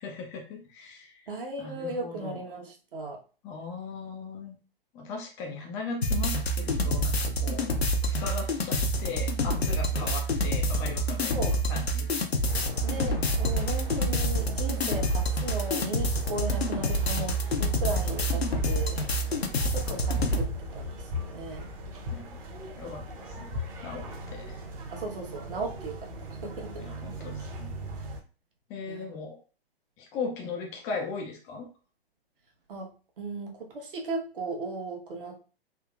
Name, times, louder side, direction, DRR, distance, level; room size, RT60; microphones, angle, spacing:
voice 1, 0.0-1.3 1.6-2.4 3.4-4.6 4.9-7.7 8.0-11.4 11.7-12.1 22.1-22.4 22.8-24.6 26.8-27.7 28.7-29.4 30.0-31.7, left 4 dB, 10° left, 1 dB, 0.3 m, -38 dB
voice 2, 1.3-3.2 9.9-10.1 11.3-11.6 12.8-19.0 19.7-21.7 24.9-26.9 28.9-29.1 32.7-32.9 33.2-35.4, right 2 dB, 60° right, 1 dB, 1.2 m, -36 dB
sound 1, 6.0-20.5, equal, 85° left, 0.7 m, -27 dB
sound 2, 12.4-28.2, equal, 35° right, 0.9 m, -39 dB
3.6 x 2.8 x 2.3 m, 0.36 s
figure-of-eight pair, 115°, 30 cm